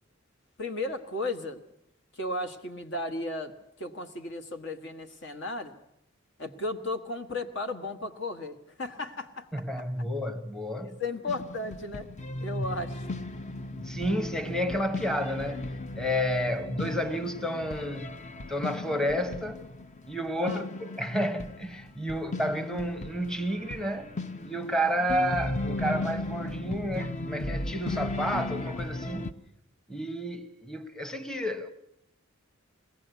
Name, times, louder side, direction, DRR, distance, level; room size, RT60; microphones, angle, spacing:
voice 1, 0.6-1.6 2.1-3.5 3.8-5.7 6.4-9.6 10.8-12.1 12.4-13.1 20.4-20.7 22.1-22.2 25.0-25.1, left 2 dB, 60° left, 1.7 m, -35 dB
voice 2, 9.5-11.0 13.7-18.1 18.5-19.6 20.1-24.1 24.4-29.3 29.9-31.7, equal, 5° left, 1.0 m, -31 dB
sound 1, 11.3-29.3, left 2 dB, 35° left, 0.7 m, -36 dB
21.5 x 17.5 x 8.2 m
head